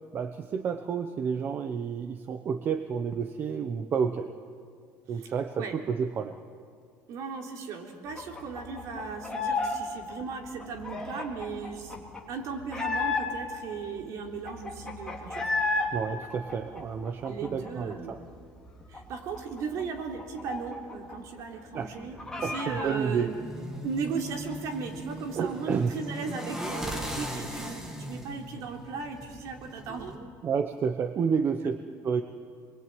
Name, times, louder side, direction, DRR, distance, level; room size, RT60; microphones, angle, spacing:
voice 1, 0.1-4.3 5.1-6.4 15.9-18.2 21.7-22.0 22.4-23.3 25.3-25.9 29.9-31.8 32.0-32.2, right 6 dB, 30° right, 7 dB, 1.0 m, -30 dB
voice 2, 7.1-15.5 17.3-18.2 18.9-23.3 23.8-30.1 31.6-31.7, right 5 dB, 55° right, 2 dB, 3.8 m, -37 dB
sound 1, 8.2-9.8 10.0-13.6 14.0-14.1 14.3-15.9 16.2-17.9 18.3-18.4 18.7-21.1 21.4-21.5 21.8-23.0, left 3 dB, 10° left, 3.0 m, -33 dB
sound 2, 22.9-30.2, equal, 5° right, 2.5 m, -39 dB
28.5 x 22.0 x 9.2 m, 2.2 s
cardioid pair, 170°, 7 cm